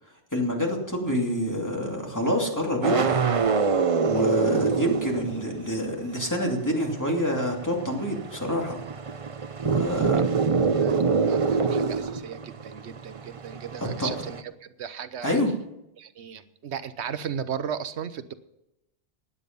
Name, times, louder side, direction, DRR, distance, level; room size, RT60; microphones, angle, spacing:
voice 1, 0.3-3.3 4.0-8.8 9.6-10.3 13.8-14.1 15.2-15.5, equal, 15° left, 0 dB, 2.7 m, -27 dB
sound 1, 2.8-5.7 5.9-14.4, right 5 dB, 35° right, 0.6 m, -25 dB
voice 2, 10.8-15.4 16.0-18.3, right 7 dB, 75° right, 13 dB, 1.1 m, -36 dB
16.5 x 10.0 x 5.4 m, 0.87 s
omnidirectional pair, 1.1 m